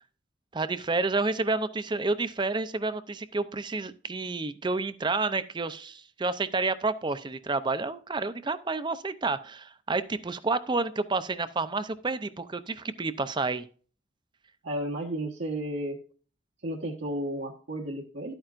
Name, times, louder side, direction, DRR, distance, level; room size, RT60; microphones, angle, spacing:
voice 1, 0.5-13.6, right 3 dB, 25° right, 13 dB, 0.5 m, -30 dB
voice 2, 14.6-16.0 16.6-18.4, right 1 dB, 75° right, -3 dB, 1.3 m, -33 dB
11.5 x 8.9 x 2.5 m, 0.41 s
head